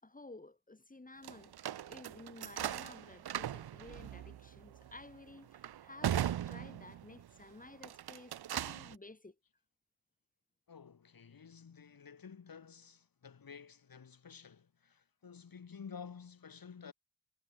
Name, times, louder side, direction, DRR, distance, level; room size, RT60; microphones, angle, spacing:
voice 1, 0.0-1.5 1.9-9.3, left 2 dB, 20° left, 5.1 m, -54 dB
sound 1, 1.2-7.3 7.7-9.0, right 11 dB, 75° right, 0.7 m, -39 dB
voice 2, 10.7-16.9, left 6 dB, 60° left, 3.5 m, -52 dB
wide cardioid pair, 155°, 38 cm